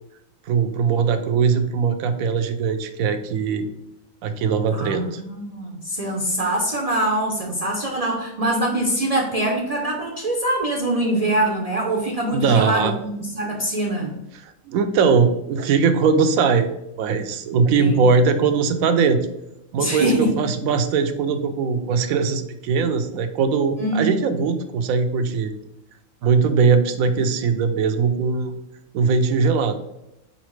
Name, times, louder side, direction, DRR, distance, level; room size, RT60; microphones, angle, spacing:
voice 1, 0.5-3.6 4.2-5.2 12.3-12.9 14.4-16.7 17.0-19.2 19.7-25.5 26.2-28.5 28.9-29.8, right 5 dB, 80° right, 8 dB, 1.0 m, -20 dB
voice 2, 4.7-14.1 17.7-18.1 19.8-20.3 23.8-24.1, right 1 dB, 45° right, -1 dB, 0.5 m, -23 dB
4.2 x 4.1 x 3.1 m, 0.86 s
omnidirectional pair, 1.4 m